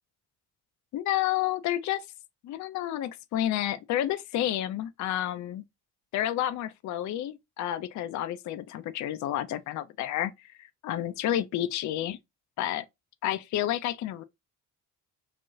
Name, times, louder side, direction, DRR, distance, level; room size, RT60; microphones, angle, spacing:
voice 1, 0.9-2.1 2.4-5.6 6.1-12.2 12.6-12.8 13.2-14.2, left 12 dB, 40° left, 0.4 m, -30 dB
2.9 x 2.0 x 2.3 m
hypercardioid pair, 45°, 46 cm